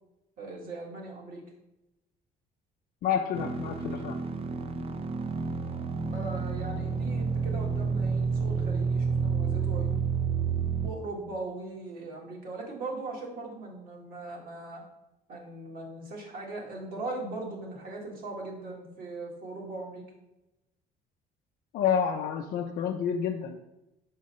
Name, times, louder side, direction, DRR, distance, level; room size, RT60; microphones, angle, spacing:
voice 1, 0.4-1.4 6.0-10.1 10.8-14.8 15.3-20.0, right 2 dB, 60° right, -1 dB, 1.7 m, -39 dB
voice 2, 3.0-4.2 21.7-23.6, left 8 dB, 65° left, 3 dB, 0.5 m, -29 dB
sound 1, 3.3-10.9, right 5 dB, 35° right, 0.5 m, -29 dB
6.4 x 3.8 x 4.1 m, 0.96 s
cardioid pair, 110°, 17 cm